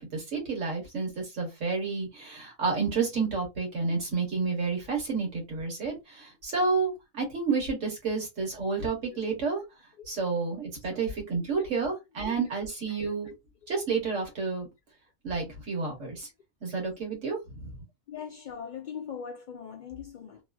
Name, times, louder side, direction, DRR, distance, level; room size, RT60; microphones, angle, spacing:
voice 1, 0.0-9.6 10.1-13.3 13.7-14.7 15.2-16.3 16.6-17.7, right 4 dB, 70° right, 1.6 m, -30 dB
voice 2, 18.1-20.4, left 7 dB, 80° left, 0.4 m, -40 dB
3.0 x 2.4 x 2.3 m
omnidirectional pair, 1.3 m